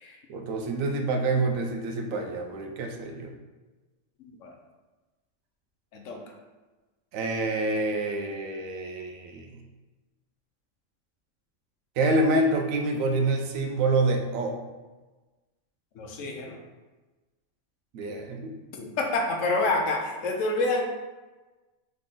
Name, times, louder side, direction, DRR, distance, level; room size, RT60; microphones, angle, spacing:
voice 1, 0.3-3.3 7.1-9.6 12.0-14.5 17.9-18.6, right 2 dB, 80° right, 3 dB, 1.0 m, -27 dB
voice 2, 4.2-4.5 5.9-6.2 16.0-16.6 18.8-20.8, left 2 dB, 70° left, 2 dB, 1.0 m, -28 dB
4.0 x 3.3 x 3.6 m, 1.2 s
omnidirectional pair, 1.4 m